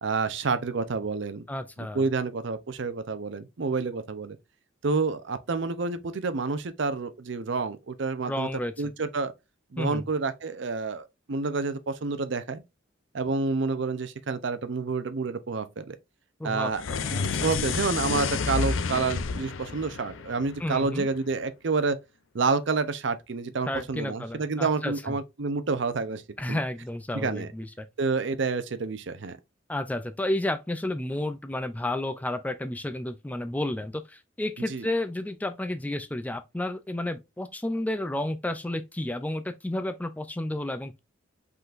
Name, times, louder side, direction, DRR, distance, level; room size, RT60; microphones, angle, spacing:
voice 1, 0.0-1.4 1.9-4.4 4.8-8.5 8.8-9.3 9.7-12.6 13.1-16.0 16.4-16.8 17.1-22.0 22.3-26.2 26.5-26.6 27.1-27.5 28.0-29.4 34.7-34.9, right 4 dB, 60° right, 0.6 m, -29 dB
voice 2, 1.5-2.0 8.2-8.7 9.8-10.0 16.4-17.5 20.6-21.1 23.7-25.2 26.4-27.9 29.7-41.0, left 1 dB, 10° left, 0.3 m, -31 dB
sound 1, 16.7-21.1, left 5 dB, 75° left, 0.5 m, -30 dB
5.5 x 3.8 x 2.5 m
head